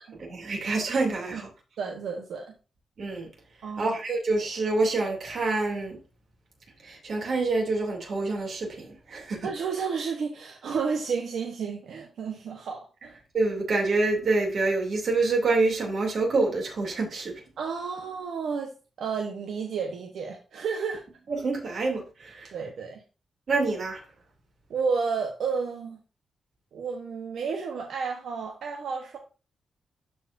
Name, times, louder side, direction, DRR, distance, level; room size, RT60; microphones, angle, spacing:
voice 1, 0.2-1.5 3.0-3.3 3.8-6.0 6.8-9.5 13.3-17.4 21.3-22.5 23.5-24.0, right 3 dB, 50° right, 2.7 m, -27 dB
voice 2, 1.8-2.5 3.6-3.9 9.4-13.2 17.6-21.0 22.5-23.0 24.7-26.0 26.7-29.2, right 5 dB, 80° right, 1.0 m, -31 dB
13.0 x 4.8 x 2.6 m
wide cardioid pair, 170°, 0 cm